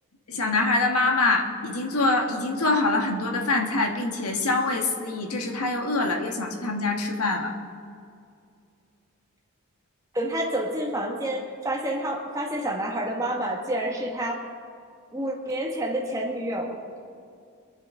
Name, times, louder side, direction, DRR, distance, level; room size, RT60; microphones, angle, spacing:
voice 1, 0.3-7.5, left 2 dB, 90° left, 2 dB, 1.6 m, -25 dB
voice 2, 10.1-14.4 15.1-16.8, right 1 dB, 15° right, -1 dB, 1.7 m, -28 dB
23.0 x 11.0 x 3.8 m, 2.3 s
head